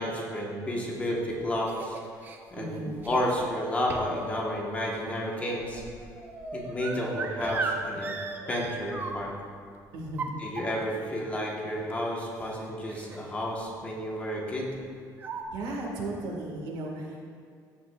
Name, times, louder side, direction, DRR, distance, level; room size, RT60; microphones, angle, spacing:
voice 1, 0.0-2.0 2.5-2.8 3.0-5.8 6.5-8.1 8.5-9.3 10.4-14.7, left 1 dB, 20° left, -2 dB, 1.1 m, -31 dB
sound 1, 0.9-2.4 3.0-3.5 3.9-4.3 4.6-9.5 10.0-11.0 11.9-12.0 12.3-12.5 12.9-13.3 13.6-13.8 14.7-14.8 15.2-15.4, right 4 dB, 25° right, 0.6 m, -37 dB
voice 2, 2.6-2.9 9.9-10.4 15.5-17.3, right 2 dB, 75° right, -1 dB, 1.6 m, -35 dB
Dog, 3.0-8.6, right 1 dB, 10° right, 2.0 m, -41 dB
14.0 x 7.1 x 2.3 m, 2.2 s
cardioid pair, 170°, 7 cm